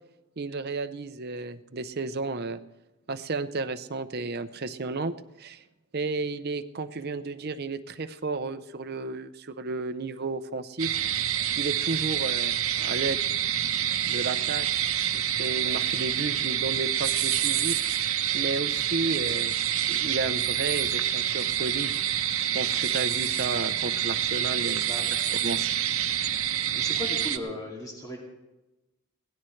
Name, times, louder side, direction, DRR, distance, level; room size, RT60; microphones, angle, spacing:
voice 1, 0.4-2.6 3.1-5.6 5.9-11.0 11.6-13.2 14.1-14.7 15.1-17.8 18.3-19.5 19.9-21.9 22.4-24.8 25.1-25.7, right 3 dB, 45° right, 10 dB, 0.7 m, -33 dB
sound 1, 10.8-27.4, right 10 dB, 65° right, 1.0 m, -27 dB
voice 2, 26.7-28.2, left 1 dB, 15° left, -2 dB, 2.4 m, -36 dB
22.0 x 17.0 x 3.2 m, 1.0 s
head